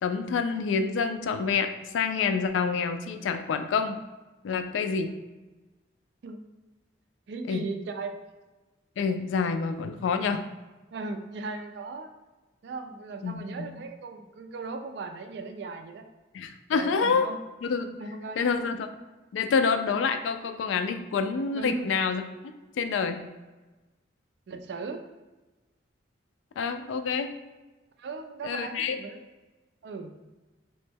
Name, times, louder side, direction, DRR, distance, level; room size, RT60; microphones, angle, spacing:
voice 1, 0.0-4.0 4.4-5.1 7.5-7.6 9.0-10.4 13.2-13.7 16.3-17.3 17.6-17.9 18.4-18.9 19.3-22.2 22.8-23.2 26.6-27.3 28.4-29.0, left 5 dB, 85° left, 9 dB, 0.3 m, -27 dB
voice 2, 7.3-8.2 10.9-12.1 12.6-16.1 16.7-17.4 18.0-18.4 21.5-21.9 24.5-25.0 28.0-29.3 29.8-30.1, right 3 dB, 60° right, 6 dB, 0.3 m, -37 dB
3.0 x 2.1 x 3.3 m, 1.2 s
head